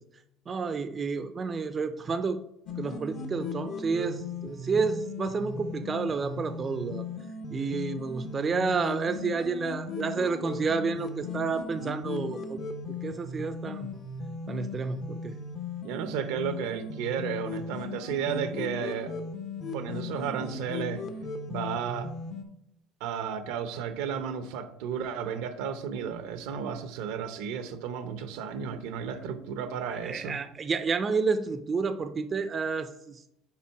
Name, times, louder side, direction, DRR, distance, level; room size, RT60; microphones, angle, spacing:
voice 1, 0.5-2.4 2.8-7.0 7.5-12.6 13.0-13.9 14.5-15.4 29.9-33.2, right 4 dB, 30° right, 10 dB, 0.5 m, -30 dB
sound 1, 2.7-22.4, left 4 dB, 55° left, 1.0 m, -37 dB
voice 2, 15.8-19.1 19.7-21.0 21.5-22.1 23.0-30.4, right 7 dB, 80° right, 10 dB, 0.7 m, -33 dB
5.8 x 4.5 x 4.5 m, 0.78 s
supercardioid pair, 105°, 0 cm